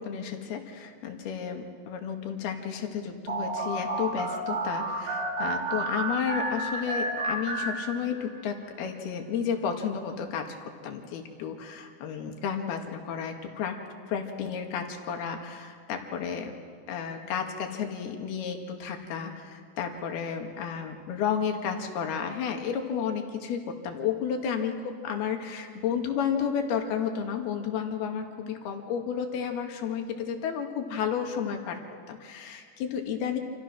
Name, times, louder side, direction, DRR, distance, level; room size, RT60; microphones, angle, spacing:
voice 1, 0.0-10.6 10.8-13.8 14.1-16.6 16.9-31.8 32.1-33.4, left 7 dB, 70° left, 3 dB, 3.9 m, -32 dB
sound 1, 3.3-8.4, right 2 dB, 70° right, 8.5 m, -31 dB
28.5 x 27.5 x 6.2 m, 2.2 s
omnidirectional pair, 4.8 m